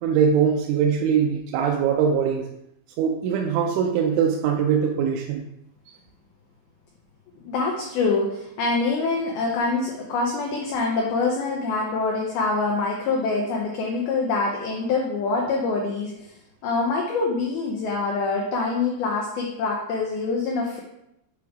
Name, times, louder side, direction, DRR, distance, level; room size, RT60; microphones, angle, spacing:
voice 1, 0.0-2.5 3.0-5.4, right 7 dB, 80° right, 0 dB, 2.9 m, -22 dB
voice 2, 7.4-16.3 16.6-20.8, left 3 dB, 90° left, -1 dB, 2.1 m, -25 dB
8.4 x 3.5 x 4.8 m, 0.81 s
omnidirectional pair, 5.5 m